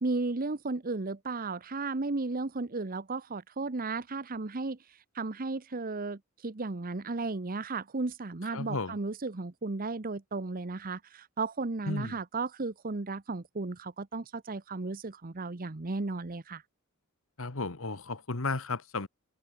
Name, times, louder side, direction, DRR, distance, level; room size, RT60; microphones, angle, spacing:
voice 1, 0.0-16.6, right 3 dB, 40° right, 0.9 m, -34 dB
voice 2, 8.5-9.0 11.9-12.2 17.4-19.1, left 3 dB, 65° left, 1.6 m, -34 dB
head